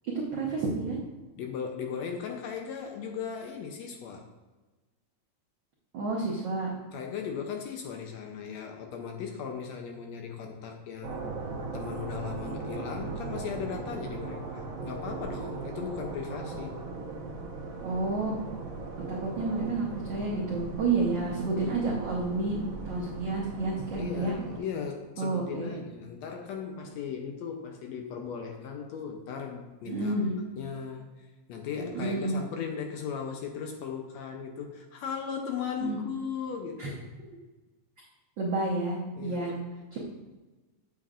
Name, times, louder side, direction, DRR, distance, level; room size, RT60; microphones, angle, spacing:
voice 1, 0.1-1.0 5.9-6.7 17.8-18.3 19.1-22.6 22.8-24.3 25.2-25.8 29.9-30.4 31.8-32.3 35.8-36.0 36.8-36.9 38.4-39.5 39.9-40.0, right 3 dB, 90° right, -3 dB, 1.0 m, -30 dB
voice 2, 1.3-4.2 6.9-11.4 11.7-16.8 23.9-31.1 31.5-37.0 39.1-39.7, left 6 dB, 75° left, 3 dB, 1.7 m, -37 dB
sound 1, 11.0-24.6, right 3 dB, 60° right, 1.9 m, -38 dB
7.7 x 7.6 x 2.5 m, 1.2 s
omnidirectional pair, 3.5 m